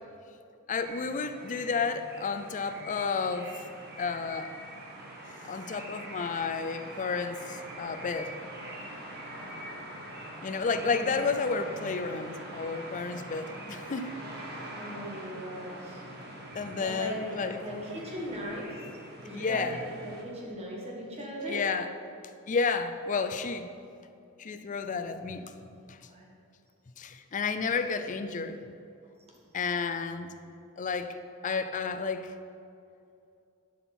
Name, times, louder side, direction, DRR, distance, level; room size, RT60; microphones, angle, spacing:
voice 1, 0.7-3.6 4.0-4.5 5.5-8.3 10.4-14.1 16.5-17.6 19.3-19.8 21.5-21.9 22.5-23.7 24.4-25.5 25.9-26.0 27.0-28.6 29.5-30.3 30.8-31.2 31.4-32.3, left 5 dB, 35° left, 10 dB, 0.4 m, -31 dB
sound 1, 0.8-20.2, right 1 dB, 45° right, 1.4 m, -44 dB
voice 2, 14.7-16.0 16.8-17.2 17.6-18.7 19.2-21.6 24.8-25.3 25.7-26.3, equal, 30° right, -2 dB, 1.6 m, -39 dB
11.5 x 5.5 x 4.3 m, 2.6 s
head